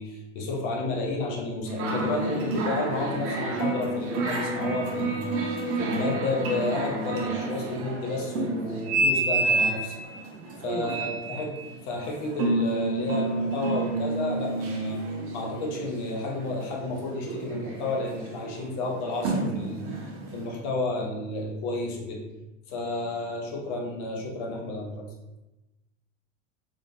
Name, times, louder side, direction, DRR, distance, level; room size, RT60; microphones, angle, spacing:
voice 1, 0.0-10.0 10.6-15.0 15.3-22.2 22.7-25.1, left 2 dB, 45° left, 0 dB, 1.0 m, -31 dB
sound 1, 1.7-20.6, right 2 dB, 35° right, 0.9 m, -30 dB
voice 2, 10.3-11.2, right 2 dB, 75° right, 3 dB, 0.9 m, -36 dB
3.4 x 3.4 x 2.7 m, 1.0 s
hypercardioid pair, 120°, 39 cm